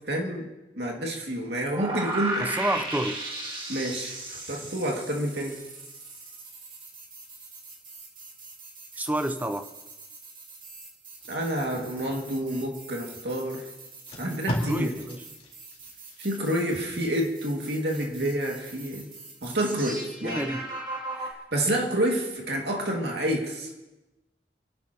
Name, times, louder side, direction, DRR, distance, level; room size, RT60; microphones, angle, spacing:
voice 1, 0.1-0.5 0.8-2.5 3.7-5.6 11.3-13.7 14.2-14.9 16.2-19.1 19.4-20.5 21.2-23.7, right 1 dB, 65° right, -1 dB, 2.3 m, -29 dB
sound 1, 1.7-21.3, right 2 dB, 30° right, 2.0 m, -39 dB
voice 2, 2.4-3.2 9.0-9.7 14.7-15.2 20.2-20.7, right 1 dB, 10° right, 8 dB, 0.7 m, -29 dB
Packing tape duct tape, 11.1-12.7 13.4-13.5 13.9-16.9 17.3-17.5, equal, 35° left, 4.2 m, -37 dB
29.0 x 12.0 x 3.0 m, 1.0 s
head